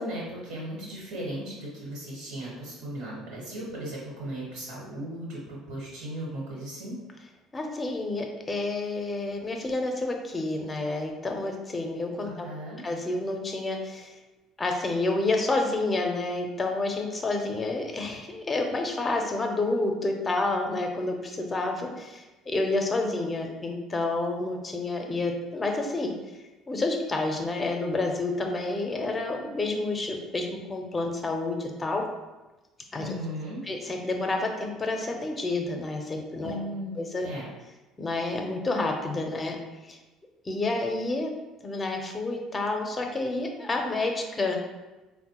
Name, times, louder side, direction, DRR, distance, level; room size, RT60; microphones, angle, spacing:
voice 1, 0.0-7.0 12.2-12.8 33.0-33.6 36.4-37.0 37.2-37.5, right 1 dB, 80° right, -6 dB, 1.1 m, -36 dB
voice 2, 7.5-12.5 12.8-14.1 14.6-26.1 26.7-32.0 32.9-33.1 33.6-36.6 37.0-37.3 38.0-39.6 39.8-40.0 40.4-41.3 41.6-44.6, left 2 dB, 25° left, 3 dB, 0.6 m, -29 dB
3.9 x 2.1 x 2.9 m, 1.1 s
supercardioid pair, 85°, 0 cm